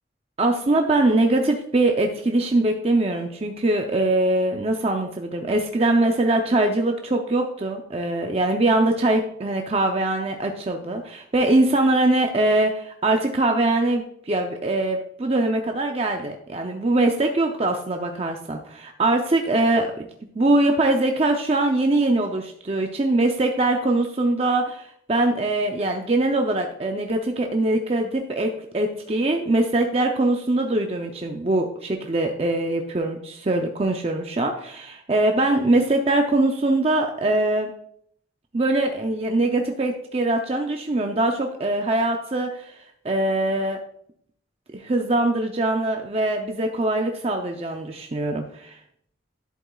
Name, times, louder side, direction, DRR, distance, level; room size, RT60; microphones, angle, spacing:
voice 1, 0.4-20.1 20.3-37.7 38.5-42.7 43.0-43.8 44.7-48.8, right 2 dB, 30° right, 3 dB, 0.5 m, -22 dB
11.0 x 7.6 x 2.3 m, 0.67 s
head